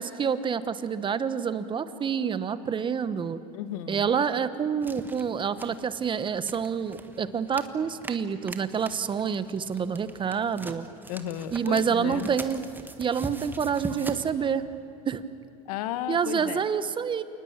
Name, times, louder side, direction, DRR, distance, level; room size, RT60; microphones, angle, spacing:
voice 1, 0.0-3.4 3.9-10.9 11.5-12.6 13.0-14.6 15.1-15.2 16.1-17.2, right 7 dB, 25° right, 13 dB, 1.1 m, -28 dB
voice 2, 3.5-4.1 11.1-12.3 15.6-16.6, left 11 dB, 80° left, 12 dB, 1.5 m, -34 dB
sound 1, 4.8-14.3, right 2 dB, 10° right, 1.5 m, -42 dB
28.0 x 19.5 x 8.8 m, 2.8 s
supercardioid pair, 120°, 19 cm